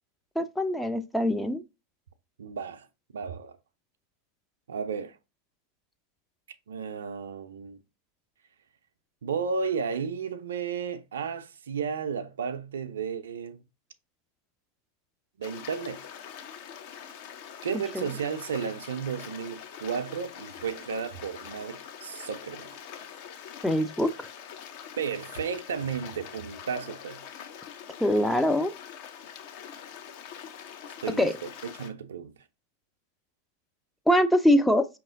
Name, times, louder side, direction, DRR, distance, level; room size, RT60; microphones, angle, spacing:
voice 1, 0.4-1.6 17.7-18.1 23.6-24.3 28.0-28.7 31.2-31.4 34.1-34.9, equal, 5° left, 0.4 m, -23 dB
voice 2, 2.4-2.9 3.1-3.5 4.7-5.2 6.7-7.8 9.2-13.6 15.4-16.0 17.6-22.7 25.0-27.2 30.8-31.3 31.8-32.3, right 6 dB, 65° right, 0.4 m, -33 dB
Stream, 15.4-31.9, left 8 dB, 50° left, 0.6 m, -44 dB
5.3 x 2.9 x 2.5 m
figure-of-eight pair, 90°, 0 cm